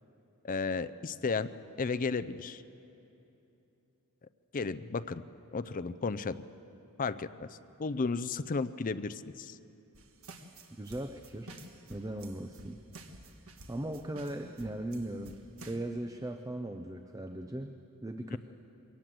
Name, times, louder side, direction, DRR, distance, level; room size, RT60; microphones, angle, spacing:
voice 1, 0.4-1.5 1.8-2.6 4.5-5.2 5.5-6.4 7.0-9.6 18.3-18.4, left 4 dB, 40° left, 12 dB, 0.5 m, -34 dB
sound 1, 9.9-15.8, right 2 dB, 65° right, 1.6 m, -51 dB
voice 2, 10.8-11.6 11.9-12.8 13.7-15.4 15.7-18.4, right 1 dB, 15° right, 7 dB, 0.6 m, -38 dB
22.5 x 18.0 x 7.6 m, 2.9 s
head